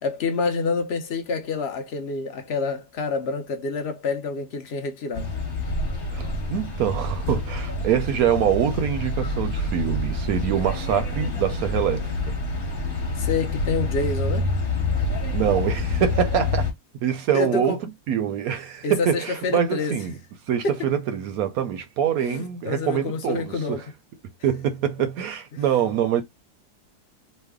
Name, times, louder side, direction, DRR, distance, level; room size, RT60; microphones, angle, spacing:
voice 1, 0.0-5.3 13.2-14.5 17.3-17.8 18.8-20.0 20.6-20.9 22.2-23.8 25.5-25.6, left 4 dB, 60° left, 0.7 m, -28 dB
sound 1, 5.1-16.7, left 2 dB, 35° left, 1.3 m, -27 dB
voice 2, 6.1-12.4 15.3-16.7 17.0-17.8 18.1-20.1 20.5-23.8 24.4-26.2, right 9 dB, 70° right, 1.0 m, -24 dB
3.2 x 2.1 x 3.5 m
omnidirectional pair, 1.7 m